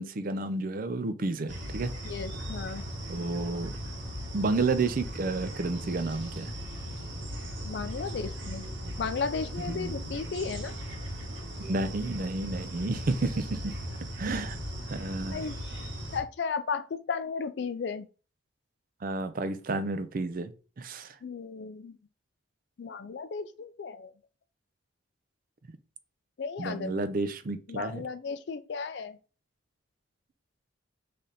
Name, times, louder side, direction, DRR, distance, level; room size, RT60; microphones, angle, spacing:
voice 1, 0.0-1.9 3.1-3.7 4.3-6.5 9.7-9.9 11.6-13.8 14.2-14.6 14.9-15.5 19.0-21.1 26.6-28.1, right 3 dB, 45° right, 0.5 m, -31 dB
sound 1, 1.5-16.2, equal, 75° right, 1.7 m, -38 dB
voice 2, 2.0-2.8 7.6-8.7 9.0-10.7 15.3-15.8 16.1-18.1 21.2-22.0 22.8-24.1 26.4-27.0 27.7-29.2, left 5 dB, 60° left, 0.4 m, -35 dB
3.8 x 3.4 x 4.2 m
head